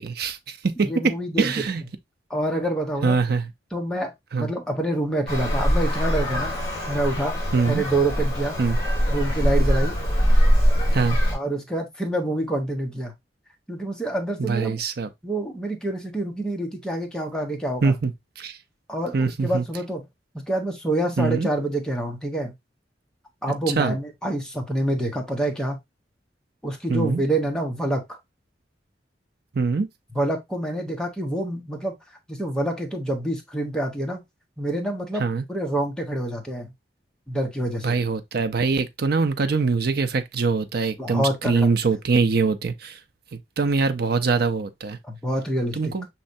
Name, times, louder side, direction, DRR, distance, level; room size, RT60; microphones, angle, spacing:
voice 1, 0.0-1.8 3.0-3.5 4.3-4.5 7.5-7.8 8.6-8.8 10.9-11.2 14.4-15.1 17.8-18.6 19.1-19.6 21.2-21.5 23.8-24.0 26.9-27.2 29.5-29.9 35.2-35.5 37.8-43.0 43.3-45.0 45.8-46.1, right 4 dB, 60° right, 0.6 m, -23 dB
voice 2, 0.8-1.5 2.3-3.2 3.7-4.1 4.4-6.5 6.9-7.4 7.7-8.6 9.1-10.0 11.3-13.1 13.7-14.7 15.2-17.9 18.9-20.0 20.3-22.5 23.4-25.8 26.6-28.2 30.1-31.9 32.3-34.2 34.6-36.7 37.3-38.0 41.0-41.7 45.1-45.9, right 1 dB, 5° left, 0.9 m, -27 dB
Traffic noise roadway noise, 5.3-11.3, equal, 20° left, 2.2 m, -22 dB
5.5 x 3.2 x 2.6 m
head